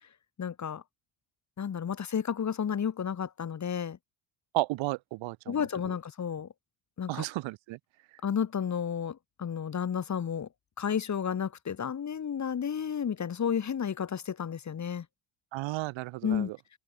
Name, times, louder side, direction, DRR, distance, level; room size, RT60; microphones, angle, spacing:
voice 1, 0.4-0.8 1.6-4.0 5.5-6.5 7.0-7.2 8.2-10.5 10.8-15.0 16.2-16.5, left 7 dB, 40° left, 2.8 m, -32 dB
voice 2, 4.5-5.6 7.1-7.8 15.5-16.6, right 19 dB, 80° right, 7.4 m, -33 dB
cardioid pair, 95°, 45 cm